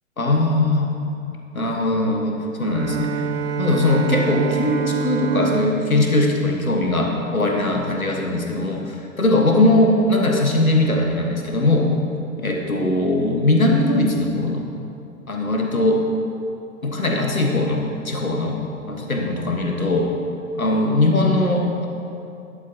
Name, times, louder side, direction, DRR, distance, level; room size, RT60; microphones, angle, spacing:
voice 1, 0.2-0.9 1.5-3.3 3.6-11.9 12.4-14.7 15.3-16.0 16.8-18.6 18.9-20.1 20.5-21.9, left 2 dB, 85° left, 1 dB, 1.6 m, -20 dB
Bowed string instrument, 2.6-7.6, right 5 dB, 25° right, 0.4 m, -27 dB
12.5 x 11.0 x 2.9 m, 2.6 s
figure-of-eight pair, 105°, 41 cm